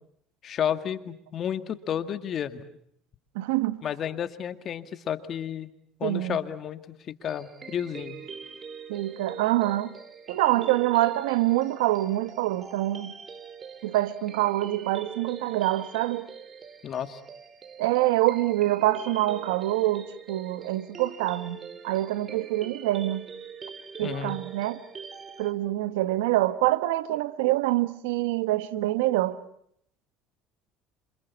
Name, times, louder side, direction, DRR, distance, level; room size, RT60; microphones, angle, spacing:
voice 1, 0.4-2.6 3.8-5.7 6.0-8.2 16.8-17.2 24.0-24.4, left 9 dB, 45° left, 2.0 m, -31 dB
voice 2, 3.3-3.8 6.0-6.4 8.9-9.9 10.3-13.1 13.8-16.3 17.8-21.6 21.8-23.3 24.0-24.8 25.4-29.4, right 16 dB, 90° right, 1.3 m, -25 dB
sound 1, 7.2-25.5, right 6 dB, 35° right, 2.6 m, -43 dB
27.5 x 26.5 x 7.1 m
supercardioid pair, 100°, 0 cm